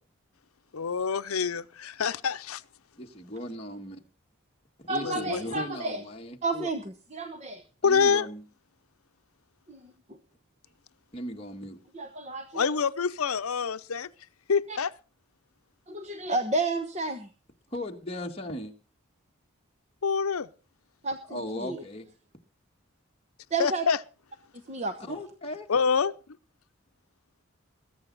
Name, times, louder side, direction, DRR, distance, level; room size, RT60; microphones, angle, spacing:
voice 1, 0.7-2.6 5.0-5.4 7.8-8.3 12.5-14.1 14.5-14.9 20.0-20.5 23.6-24.0 25.7-26.1, left 6 dB, 80° left, 0.7 m, -26 dB
voice 2, 3.0-4.0 4.8-6.7 7.8-8.4 11.1-11.8 17.7-18.7 21.3-22.1 25.0-25.7, left 1 dB, 25° left, 1.7 m, -37 dB
voice 3, 4.9-6.0 6.4-7.6 9.7-9.9 11.9-12.8 14.7-14.8 15.9-17.3 21.0-21.8 23.5-23.9 24.7-25.1, right 3 dB, 30° right, 1.0 m, -31 dB
21.0 x 9.4 x 4.1 m
head